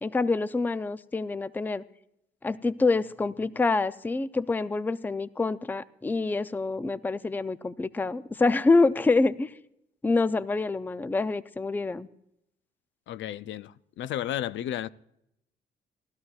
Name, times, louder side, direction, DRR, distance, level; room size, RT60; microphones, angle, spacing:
voice 1, 0.0-1.8 2.4-9.5 10.0-12.1, left 3 dB, 10° left, 0.4 m, -26 dB
voice 2, 13.1-14.9, left 11 dB, 70° left, 0.5 m, -33 dB
18.5 x 13.0 x 2.4 m
cardioid pair, 90°, 20 cm